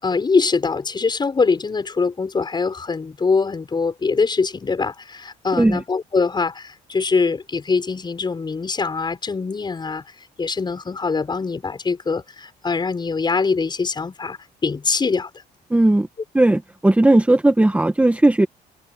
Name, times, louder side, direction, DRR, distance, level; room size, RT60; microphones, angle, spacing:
voice 1, 0.0-10.0 10.4-15.3, left 4 dB, 25° left, 6.8 m, -23 dB
voice 2, 15.7-16.1 16.3-18.5, right 2 dB, 10° right, 1.5 m, -16 dB
cardioid pair, 110°, 17 cm